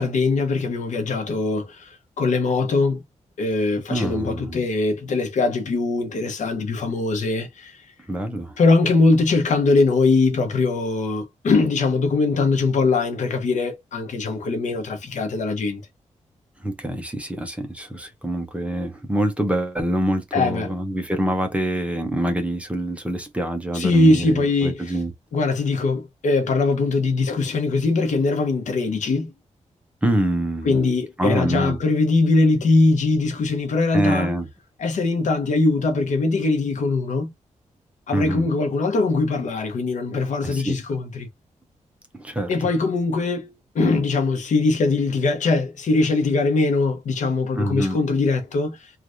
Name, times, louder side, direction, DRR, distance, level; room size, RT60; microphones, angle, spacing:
voice 1, 0.0-3.0 3.4-7.8 8.6-15.8 20.3-20.7 23.7-24.9 25.3-29.3 30.6-34.3 34.8-37.3 38.1-41.3 42.5-48.9, left 3 dB, 75° left, 0.9 m, -21 dB
voice 2, 3.9-4.6 8.1-8.5 16.6-25.1 30.0-30.7 31.2-31.8 33.9-34.5 38.1-38.5 40.4-40.7 42.1-42.5 47.5-48.0, right 1 dB, 10° right, 0.7 m, -25 dB
3.2 x 2.4 x 2.5 m
wide cardioid pair, 150°, 13 cm